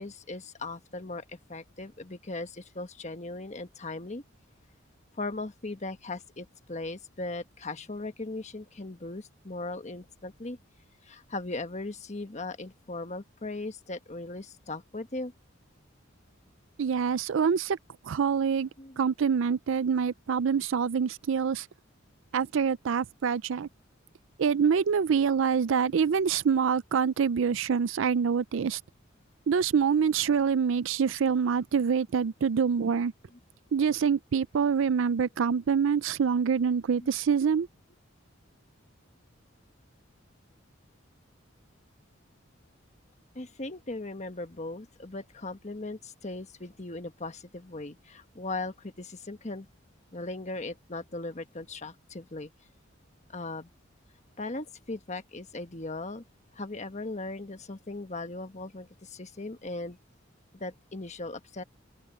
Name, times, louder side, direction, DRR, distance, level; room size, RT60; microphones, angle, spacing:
voice 1, 0.0-4.2 5.2-10.6 11.0-15.3 18.8-19.0 25.7-25.9 37.0-37.1 43.3-49.7 50.1-52.5 53.3-53.7 54.4-56.2 56.5-60.0 60.5-61.6, left 2 dB, 35° left, 1.3 m, -38 dB
voice 2, 16.8-17.8 18.0-18.7 19.0-21.7 22.3-23.7 24.4-28.8 29.5-33.1 33.7-37.7, right 6 dB, 70° right, 0.4 m, -26 dB
open air
head